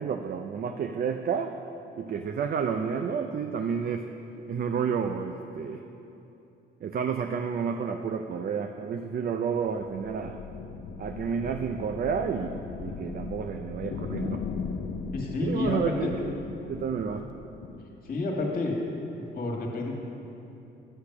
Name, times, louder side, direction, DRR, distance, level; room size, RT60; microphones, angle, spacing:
voice 1, 0.0-1.5 2.0-4.1 4.5-5.8 6.8-10.4 11.0-14.4 15.4-16.1 16.7-17.2, right 6 dB, 50° right, 6 dB, 0.5 m, -30 dB
sound 1, 9.8-18.1, left 5 dB, 65° left, 0.7 m, -38 dB
voice 2, 15.1-16.1 18.0-18.8 19.1-19.9, left 2 dB, 45° left, -1 dB, 1.9 m, -30 dB
9.9 x 6.6 x 6.0 m, 2.9 s
cardioid pair, 90°, 20 cm